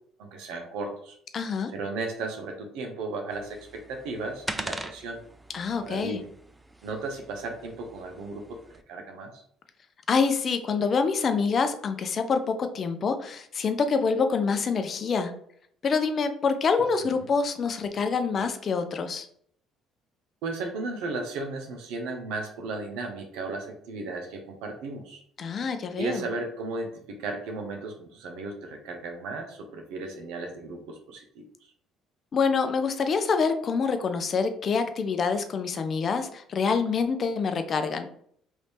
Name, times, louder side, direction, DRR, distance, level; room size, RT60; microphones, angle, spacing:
voice 1, 0.2-1.2 1.7-5.2 5.8-6.3 6.8-8.6 8.9-9.4 17.2-17.3 20.4-25.2 26.0-31.5, right 3 dB, 75° right, 4 dB, 0.7 m, -35 dB
voice 2, 1.3-1.7 5.5-6.2 10.1-15.3 15.8-19.3 25.4-26.3 32.3-38.1, left 5 dB, 45° left, 8 dB, 0.5 m, -26 dB
sound 1, 3.3-8.8, right 1 dB, 10° right, 0.4 m, -41 dB
3.1 x 2.7 x 3.3 m, 0.65 s
supercardioid pair, 70°, 0 cm